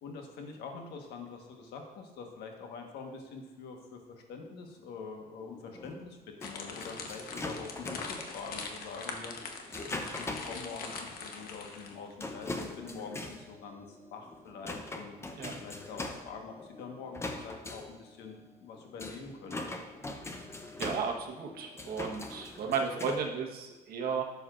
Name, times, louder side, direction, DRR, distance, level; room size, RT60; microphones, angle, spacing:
voice 1, 0.0-19.8, left 4 dB, 80° left, 2 dB, 1.4 m, -45 dB
sound 1, 5.3-8.3 9.1-10.6 11.0-11.1 11.4-11.5 12.2-23.2, left 2 dB, 15° left, 0.7 m, -42 dB
sound 2, 6.4-12.1, left 4 dB, 65° left, 1.1 m, -42 dB
voice 2, 20.8-24.2, right 5 dB, 65° right, 1 dB, 1.3 m, -34 dB
11.5 x 7.0 x 2.5 m, 1.2 s
cardioid pair, 110°, 17 cm